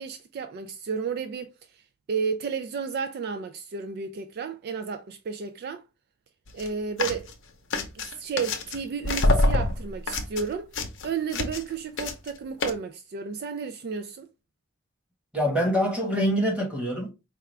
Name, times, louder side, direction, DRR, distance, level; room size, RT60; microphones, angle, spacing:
voice 1, 0.0-1.8 2.1-5.8 6.5-7.3 7.9-10.7 11.0-14.3, right 6 dB, 50° right, 0.3 m, -32 dB
sound 1, 6.5-6.7 7.0-7.3 7.7-8.8 9.0-11.7 12.0-12.3 12.6-12.7, left 2 dB, 60° left, 0.7 m, -26 dB
voice 2, 15.3-17.1, equal, 5° right, 1.2 m, -25 dB
4.7 x 2.3 x 3.2 m
head